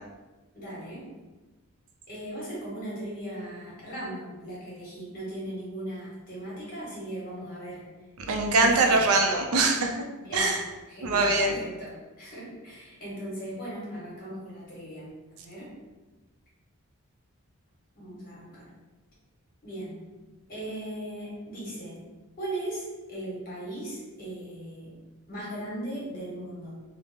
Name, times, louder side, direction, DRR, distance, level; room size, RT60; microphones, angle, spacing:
voice 1, 0.5-1.0 2.1-7.9 8.6-9.1 10.2-10.5 10.9-15.1 15.4-15.7 18.0-18.7 19.6-20.0 20.5-21.9 22.4-25.0 25.3-26.7, right 1 dB, 40° left, -6 dB, 1.2 m, -38 dB
voice 2, 8.3-10.0 10.3-10.6 11.0-11.6, right 3 dB, 75° right, 3 dB, 0.4 m, -23 dB
2.8 x 2.1 x 3.4 m, 1.2 s
head